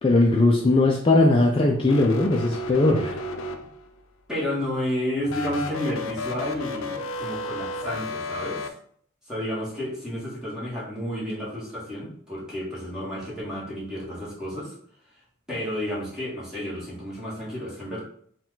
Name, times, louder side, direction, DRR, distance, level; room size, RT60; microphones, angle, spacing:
voice 1, 0.0-3.2, left 2 dB, 25° left, -1 dB, 0.4 m, -19 dB
sound 1, 1.8-4.0 5.3-8.7, left 2 dB, 80° left, 0.5 m, -33 dB
voice 2, 4.3-8.7 9.3-14.7 15.5-18.0, equal, 5° right, -7 dB, 1.7 m, -31 dB
4.5 x 2.3 x 3.8 m, 0.63 s
head